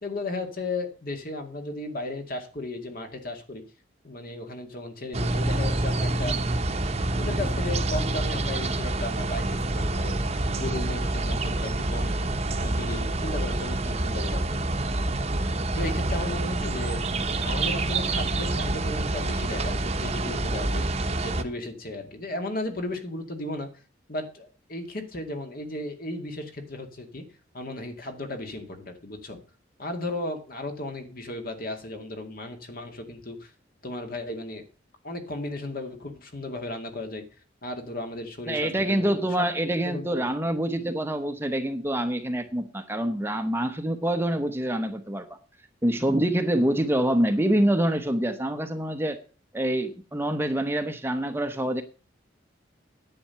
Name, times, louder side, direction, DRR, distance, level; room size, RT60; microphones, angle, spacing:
voice 1, 0.0-3.6 4.0-6.4 7.2-10.2 10.5-12.1 12.6-14.6 15.7-17.0 17.4-23.7 24.1-27.2 27.5-29.4 29.8-33.5 33.8-34.7 35.0-37.2 37.6-39.5 39.7-40.3, left 2 dB, 50° left, 5 dB, 2.2 m, -35 dB
sound 1, 5.1-21.4, right 2 dB, 35° right, 1.0 m, -27 dB
voice 2, 38.5-45.4 45.8-49.2 49.5-51.8, right 1 dB, 10° right, 7 dB, 0.9 m, -26 dB
10.5 x 8.6 x 5.7 m, 0.35 s
head